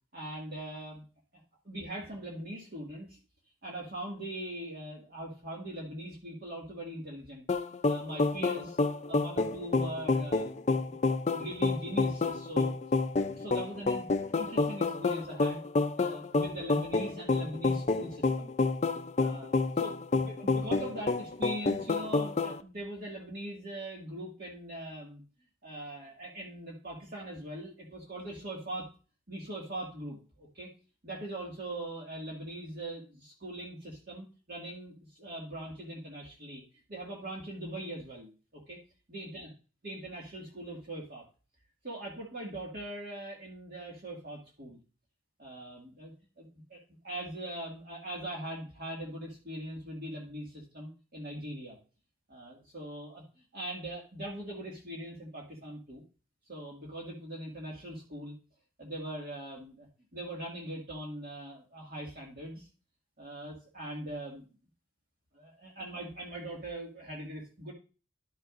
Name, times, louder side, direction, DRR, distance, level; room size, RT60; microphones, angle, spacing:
voice 1, 0.1-1.0 1.6-3.2 3.6-7.4 7.9-8.8 9.1-12.7 13.2-14.1 14.4-15.6 16.0-18.5 19.2-25.2 25.6-28.9 29.3-30.7 31.0-36.6 36.9-38.8 39.1-39.5 39.8-41.3 41.8-44.8 45.4-51.8 52.3-56.0 56.5-58.3 58.8-59.9 60.1-62.7 63.2-64.4 65.3-67.7, right 1 dB, 50° right, -3 dB, 2.1 m, -41 dB
sound 1, 7.5-22.6, left 3 dB, 35° left, 0.5 m, -29 dB
12.0 x 6.4 x 2.6 m, 0.35 s
head